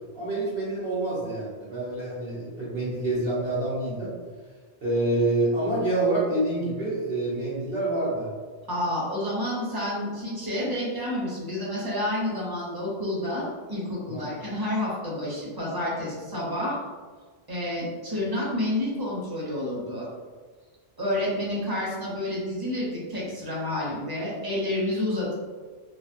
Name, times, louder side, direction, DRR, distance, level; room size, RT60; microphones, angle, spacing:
voice 1, 0.1-4.1 4.8-8.3 14.1-14.2, right 2 dB, 75° right, -9 dB, 1.1 m, -27 dB
voice 2, 8.7-16.8 17.5-20.1 21.0-25.3, left 1 dB, 25° right, -6 dB, 0.8 m, -29 dB
3.2 x 2.4 x 2.6 m, 1.5 s
omnidirectional pair, 1.1 m